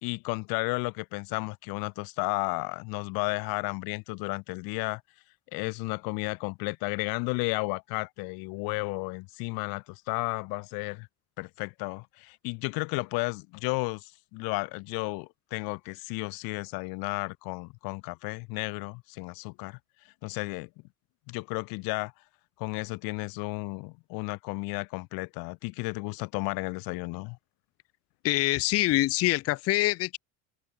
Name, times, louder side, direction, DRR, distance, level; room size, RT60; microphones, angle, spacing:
voice 1, 0.0-5.0 5.5-11.1 11.4-19.8 20.2-20.7 21.3-22.1 22.6-27.4, left 29 dB, 75° left, 1.5 m, -33 dB
voice 2, 28.2-30.2, left 17 dB, 40° left, 0.7 m, -25 dB
cardioid pair, 160°, 36 cm